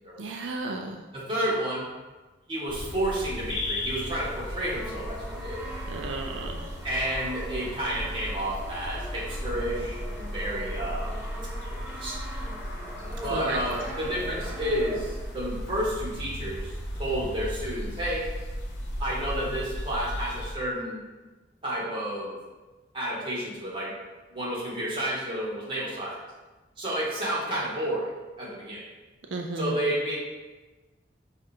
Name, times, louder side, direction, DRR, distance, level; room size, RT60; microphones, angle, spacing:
voice 1, 0.2-0.9 5.9-6.7 13.3-13.6 29.3-29.9, right 2 dB, 85° right, 2 dB, 0.4 m, -33 dB
voice 2, 1.1-1.9 2.5-5.7 6.8-11.1 11.7-12.1 13.2-18.2 19.0-21.0 21.6-22.3 22.9-23.9 24.3-26.2 26.8-28.1 28.4-28.9 29.5-30.2, right 1 dB, 25° right, -7 dB, 1.3 m, -31 dB
sound 1, 2.7-20.5, equal, 75° left, 0.8 m, -36 dB
Brass instrument, 4.6-15.4, equal, 10° right, 0.7 m, -42 dB
4.9 x 2.5 x 4.2 m, 1.2 s
head